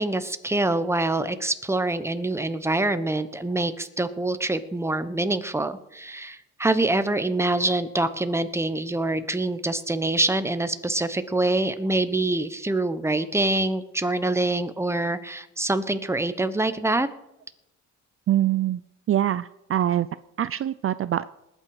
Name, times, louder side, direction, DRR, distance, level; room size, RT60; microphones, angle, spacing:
voice 1, 0.0-17.1, right 2 dB, 10° right, 11 dB, 1.1 m, -25 dB
voice 2, 18.3-18.8 19.1-20.1 20.4-21.2, right 12 dB, 45° right, 15 dB, 0.5 m, -24 dB
19.5 x 9.0 x 4.9 m, 0.89 s
cardioid pair, 90°, 30 cm